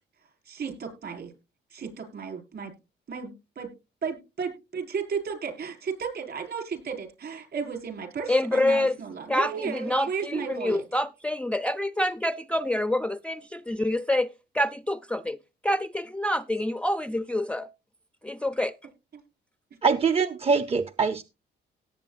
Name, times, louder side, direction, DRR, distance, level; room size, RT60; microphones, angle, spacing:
voice 1, 0.5-1.3 1.7-2.7 3.1-3.7 4.0-10.8, right 6 dB, 55° right, 4.9 m, -34 dB
voice 2, 8.3-9.0 9.3-15.4 15.6-17.7 18.2-18.7, left 1 dB, 5° left, 0.4 m, -27 dB
voice 3, 19.8-21.2, right 5 dB, 30° right, 0.6 m, -23 dB
17.5 x 8.3 x 2.5 m
cardioid pair, 90°, 20 cm